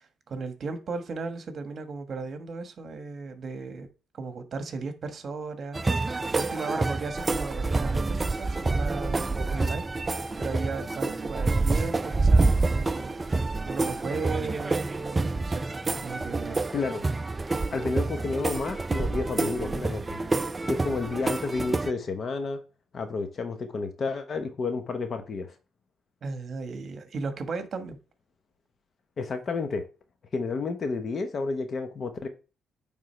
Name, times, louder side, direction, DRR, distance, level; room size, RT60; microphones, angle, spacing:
voice 1, 0.0-3.9 4.1-5.8 6.3-15.6 16.0-16.6 26.2-28.0, right 4 dB, 50° right, 1.3 m, -36 dB
sound 1, 5.7-21.9, right 3 dB, 25° right, 0.4 m, -27 dB
voice 2, 16.7-17.0 17.7-20.2 20.7-22.6 22.9-25.5 29.2-29.8 30.3-32.3, left 4 dB, 45° left, 0.9 m, -30 dB
9.0 x 3.6 x 3.2 m
cardioid pair, 90°, 0 cm